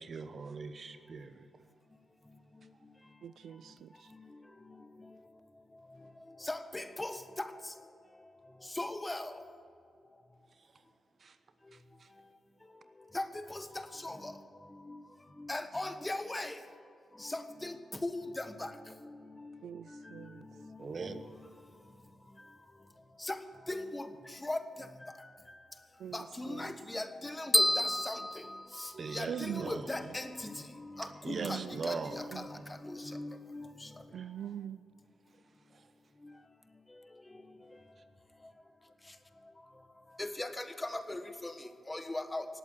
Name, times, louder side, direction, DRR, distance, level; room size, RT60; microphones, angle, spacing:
voice 1, 0.0-1.6 10.5-10.7 11.2-11.4 11.7-12.1 20.8-21.3 28.9-29.9 31.0-32.3 34.1-34.3 35.7-35.9, right 4 dB, 55° right, 1.0 m, -41 dB
voice 2, 3.2-3.9 19.6-20.5 26.0-26.2 26.5-26.6 29.3-29.7 31.3-31.7 34.1-34.8, right 9 dB, 75° right, 0.3 m, -41 dB
voice 3, 6.4-7.7 8.7-9.4 13.1-14.4 14.8-15.0 15.4-16.6 17.2-17.8 18.0-18.7 19.0-19.1 19.4-19.6 19.9-20.3 20.6-21.2 23.2-23.4 23.7-24.6 26.1-28.4 28.7-33.9 40.2-42.5, left 2 dB, 20° left, 1.4 m, -39 dB
sound 1, 27.5-29.5, equal, 5° left, 0.3 m, -30 dB
18.5 x 8.5 x 8.2 m
supercardioid pair, 50°, 0 cm